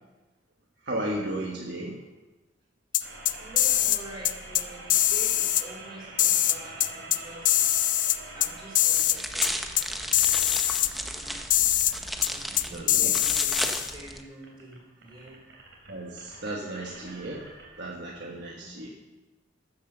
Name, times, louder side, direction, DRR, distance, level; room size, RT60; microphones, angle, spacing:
voice 1, 0.9-2.0 12.7-13.1 15.9-17.4 17.8-18.9, right 1 dB, 60° right, -2 dB, 1.4 m, -34 dB
sound 1, 2.9-4.0 4.3-4.6 4.9-5.6 6.2-7.2 7.5-8.5 8.8-9.2 9.4-9.5 9.8-9.9 10.1-10.9 11.5-11.9 12.2-12.3 12.6-13.9, left 12 dB, 45° left, 0.5 m, -23 dB
sound 2, 3.0-17.8, right 2 dB, 80° right, 2.9 m, -47 dB
voice 2, 3.3-7.6 8.3-11.7 12.3-15.4 18.6-18.9, right 1 dB, 25° right, -5 dB, 3.7 m, -46 dB
sound 3, 8.9-14.2, equal, ahead, 0.7 m, -34 dB
13.0 x 7.4 x 6.8 m, 1.2 s
head